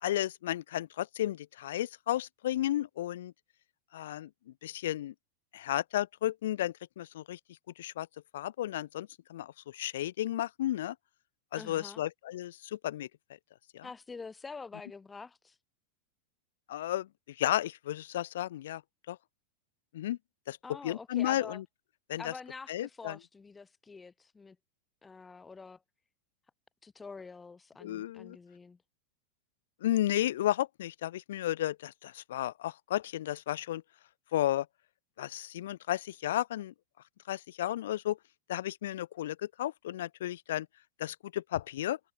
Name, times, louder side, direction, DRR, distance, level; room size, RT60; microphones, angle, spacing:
voice 1, 0.0-3.3 3.9-4.3 4.6-5.1 5.5-7.4 7.8-8.1 8.3-10.9 11.5-13.1 13.7-13.9 16.7-18.8 19.1-19.2 19.9-20.2 20.5-20.6 20.8-21.6 22.1-22.3 22.7-23.2 27.8-28.4 29.8-33.8 34.3-34.7 35.2-36.7 37.3-38.2 38.5-40.7 41.0-42.0, left 13 dB, 75° left, 1.2 m, -33 dB
voice 2, 11.5-12.0 13.8-15.6 20.6-21.6 22.2-24.6 25.0-25.8 26.8-28.8, left 4 dB, 15° left, 2.8 m, -46 dB
hypercardioid pair, 120°, 0 cm